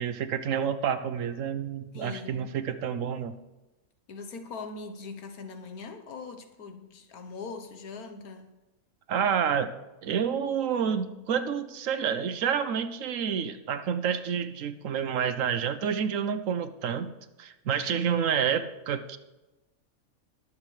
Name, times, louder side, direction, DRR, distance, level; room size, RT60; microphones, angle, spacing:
voice 1, 0.0-3.3 9.1-9.7 10.0-17.1 17.4-19.2, right 7 dB, 65° right, 1.0 m, -29 dB
voice 2, 1.9-2.5 4.1-8.5, left 4 dB, 80° left, 1.5 m, -41 dB
20.5 x 7.2 x 3.2 m
omnidirectional pair, 1.5 m